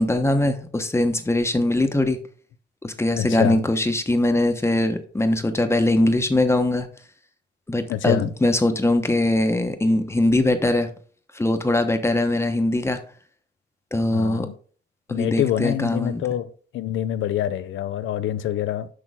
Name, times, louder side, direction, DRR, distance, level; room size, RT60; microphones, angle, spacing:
voice 1, 0.0-2.2 2.8-6.9 7.7-10.9 11.3-13.0 13.9-14.5 15.1-16.2, left 1 dB, 15° left, 1.0 m, -21 dB
voice 2, 3.2-3.6 7.9-8.3 14.1-14.5 15.1-16.5 16.7-18.9, left 11 dB, 75° left, 0.6 m, -25 dB
6.3 x 5.8 x 3.6 m
cardioid pair, 90°, 20 cm